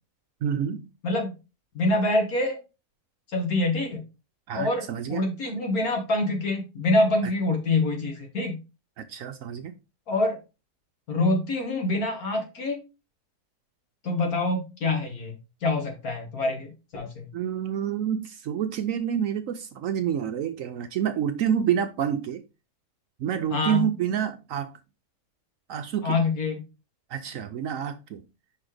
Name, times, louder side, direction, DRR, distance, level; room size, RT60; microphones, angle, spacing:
voice 1, 0.4-0.9 4.5-5.2 9.0-9.7 17.3-22.4 23.2-24.7 25.7-26.2 27.1-28.2, right 9 dB, 65° right, 0.9 m, -28 dB
voice 2, 1.0-1.4 1.7-2.6 3.3-4.0 4.5-8.6 10.1-10.4 11.1-12.8 14.0-15.4 15.6-17.3 23.5-23.9 26.0-26.6, left 2 dB, 65° left, 2.1 m, -26 dB
5.8 x 5.3 x 3.3 m
omnidirectional pair, 1.7 m